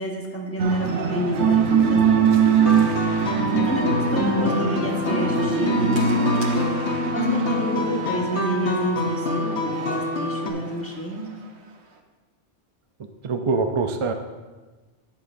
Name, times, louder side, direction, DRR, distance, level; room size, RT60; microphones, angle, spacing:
voice 1, 0.0-3.0 3.6-6.6 7.1-11.3, equal, 10° left, -1 dB, 1.3 m, -30 dB
sound 1, 0.6-10.0, right 6 dB, 70° right, 1.1 m, -23 dB
sound 2, 2.6-10.5, left 2 dB, 75° left, 1.3 m, -26 dB
voice 2, 13.2-14.1, right 4 dB, 50° right, 5 dB, 0.4 m, -23 dB
11.0 x 9.5 x 2.6 m, 1.3 s
omnidirectional pair, 1.2 m